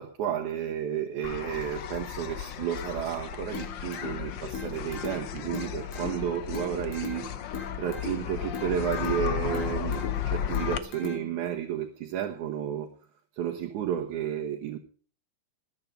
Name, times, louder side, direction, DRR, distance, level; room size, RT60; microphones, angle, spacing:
voice 1, 0.0-7.3 7.8-12.9 13.4-14.8, right 9 dB, 85° right, 1 dB, 2.8 m, -32 dB
sound 1, 1.2-10.8, left 9 dB, 65° left, 1.1 m, -34 dB
sound 2, 3.5-11.5, left 6 dB, 50° left, 3.8 m, -41 dB
20.0 x 8.9 x 5.3 m, 0.41 s
omnidirectional pair, 3.3 m